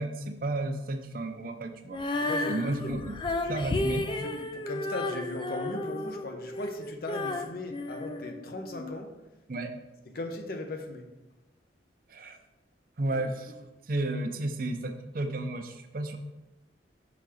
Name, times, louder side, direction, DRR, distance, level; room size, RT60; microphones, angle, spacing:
voice 1, 0.0-2.0 2.5-3.2 3.5-4.1 9.5-9.7 12.1-12.4 13.0-13.5 13.9-16.2, right 2 dB, 50° right, 6 dB, 0.6 m, -32 dB
Female singing, 1.9-8.9, left 2 dB, 25° left, 0.3 m, -33 dB
voice 2, 2.2-2.9 3.3-3.6 4.0-9.1 10.1-11.1 13.1-13.2, left 1 dB, 55° left, 4 dB, 0.8 m, -38 dB
5.7 x 3.9 x 4.8 m, 1.0 s
head